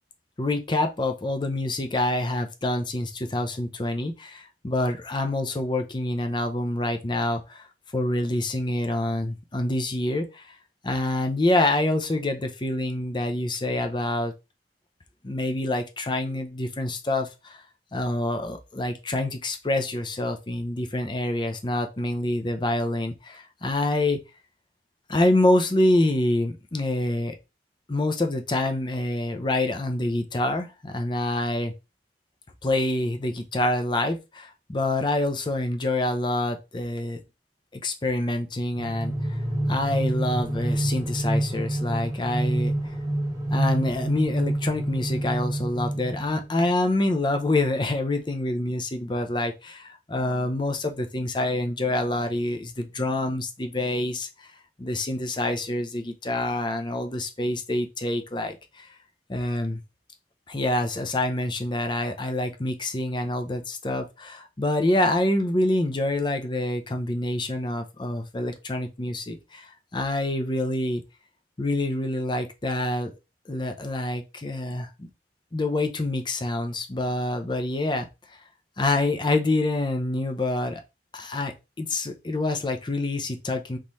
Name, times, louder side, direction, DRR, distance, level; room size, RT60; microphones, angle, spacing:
voice 1, 0.4-7.7 7.9-10.5 10.8-14.3 15.2-17.6 17.9-24.2 25.1-27.3 27.9-31.7 32.6-37.2 37.7-39.4 39.7-42.7 43.5-54.3 54.8-58.9 59.3-59.8 60.5-71.0 71.6-73.1 73.5-75.1 75.5-78.0 78.8-80.8 81.1-83.8, left 1 dB, 25° left, 6 dB, 0.6 m, -26 dB
sound 1, 38.8-46.7, right 1 dB, 20° right, 1.1 m, -27 dB
4.0 x 3.7 x 3.1 m, 0.26 s
head